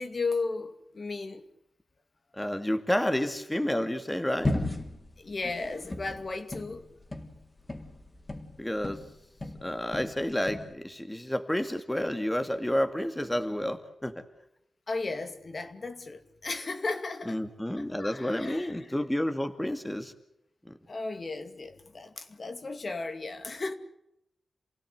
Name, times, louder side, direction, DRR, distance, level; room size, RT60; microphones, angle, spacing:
voice 1, 0.0-1.4 5.2-6.8 14.9-17.4 17.8-18.9 20.9-23.7, left 3 dB, 45° left, 2.4 m, -35 dB
voice 2, 2.4-4.5 8.6-9.0 9.6-14.2 17.3-20.1 20.7-20.8, left 1 dB, 10° left, 2.2 m, -30 dB
sound 1, 4.4-9.1 9.4-10.7, left 1 dB, 25° left, 3.6 m, -35 dB
28.5 x 17.0 x 8.1 m
wide cardioid pair, 85°, 0 cm